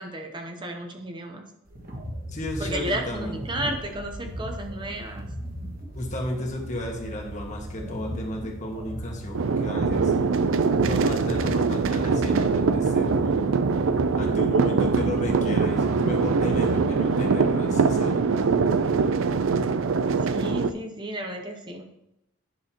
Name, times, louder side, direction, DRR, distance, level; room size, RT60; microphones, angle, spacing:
voice 1, 0.0-1.4 2.6-5.3 20.2-21.9, right 1 dB, 25° right, 4 dB, 0.7 m, -33 dB
sound 1, 1.7-17.3, equal, 45° right, 1.5 m, -37 dB
voice 2, 2.3-3.4 5.9-10.1 10.9-13.5 14.1-18.2, left 1 dB, 35° left, 1 dB, 1.4 m, -33 dB
sound 2, 9.3-20.7, right 4 dB, 75° right, 0.4 m, -23 dB
10.5 x 6.3 x 2.9 m, 0.81 s
head